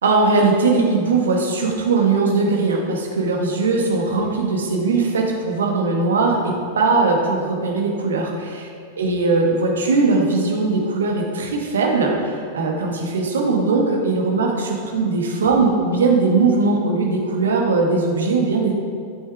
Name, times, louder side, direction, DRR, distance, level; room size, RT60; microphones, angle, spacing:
voice 1, 0.0-8.7 9.0-18.7, right 3 dB, 65° right, 0 dB, 1.6 m, -20 dB
12.0 x 7.2 x 4.7 m, 2.3 s
figure-of-eight pair, 90°, 0 cm